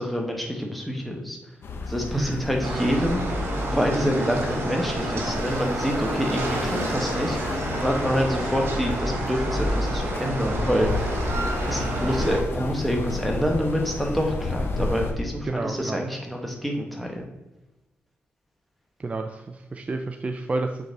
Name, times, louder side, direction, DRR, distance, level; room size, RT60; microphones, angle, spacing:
voice 1, 0.0-1.4 1.9-11.1 11.7-17.3, equal, ahead, 1 dB, 1.2 m, -27 dB
sound 1, 1.6-15.1, left 2 dB, 60° left, 0.9 m, -31 dB
sound 2, 2.6-12.4, right 2 dB, 70° right, 1.6 m, -30 dB
voice 2, 15.4-16.0 19.0-20.9, right 3 dB, 30° right, 5 dB, 0.4 m, -30 dB
7.7 x 3.9 x 4.0 m, 1.1 s
cardioid pair, 105°, 4 cm